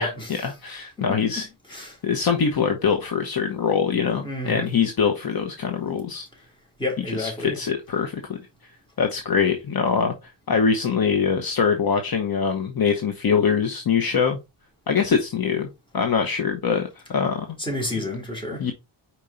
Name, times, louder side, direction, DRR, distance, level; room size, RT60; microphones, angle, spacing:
voice 1, 0.4-1.5 2.0-6.3 7.1-8.4 9.0-10.1 10.5-14.4 14.9-15.7 15.9-17.6 18.6-18.7, left 6 dB, 50° left, 1.0 m, -23 dB
voice 2, 1.0-1.4 1.7-2.0 4.2-4.7 6.8-7.6 17.6-18.7, left 1 dB, 10° left, 3.1 m, -30 dB
5.0 x 4.5 x 4.1 m
wide cardioid pair, 125°, 47 cm